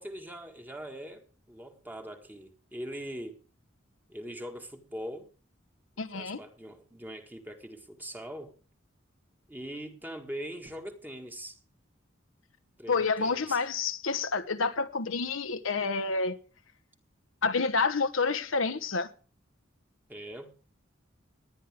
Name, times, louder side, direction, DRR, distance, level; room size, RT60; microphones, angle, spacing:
voice 1, 0.0-3.4 4.1-5.3 6.1-8.6 9.5-11.6 12.8-13.6 20.1-20.5, equal, 10° right, 1.9 m, -42 dB
voice 2, 6.0-6.4 12.9-16.4 17.4-19.1, left 4 dB, 70° left, 1.1 m, -28 dB
19.5 x 10.5 x 3.5 m
head